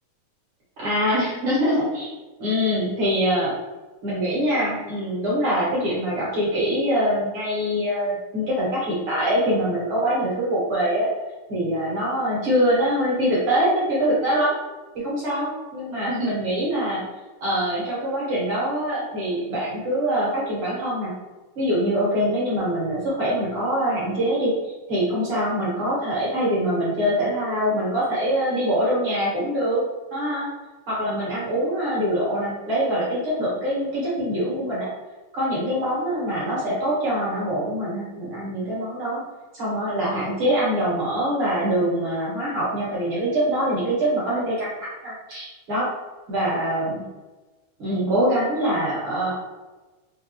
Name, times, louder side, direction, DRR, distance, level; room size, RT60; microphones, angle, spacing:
voice 1, 0.8-2.1 2.4-3.5 4.0-11.1 11.5-14.5 14.9-17.0 17.4-21.1 21.5-24.5 24.9-29.8 30.1-30.5 30.9-34.9 35.3-39.2 39.5-45.9 46.3-47.0 47.8-49.3, equal, 55° right, -8 dB, 1.6 m, -24 dB
5.1 x 2.2 x 2.8 m, 1.2 s
omnidirectional pair, 3.6 m